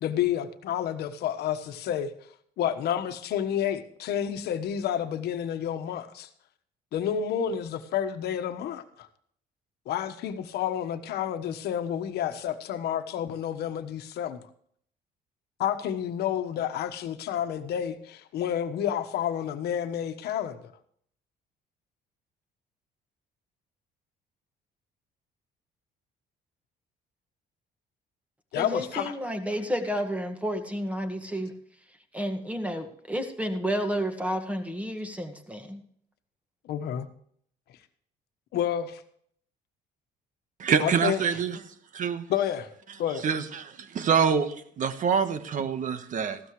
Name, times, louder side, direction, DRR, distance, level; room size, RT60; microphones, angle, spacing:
voice 1, 0.0-2.1 2.6-6.3 6.9-9.1 9.9-14.4 15.6-20.7 28.5-29.2 36.6-37.1 38.5-39.0 40.8-41.2 42.3-42.7 43.0-43.3, left 9 dB, 75° left, 1.3 m, -30 dB
voice 2, 28.6-31.5 32.1-35.8, equal, 10° right, 1.8 m, -31 dB
voice 3, 40.6-41.6 41.9-42.3 43.2-46.4, right 7 dB, 50° right, 1.3 m, -26 dB
15.5 x 13.0 x 3.2 m
cardioid pair, 110°, 17 cm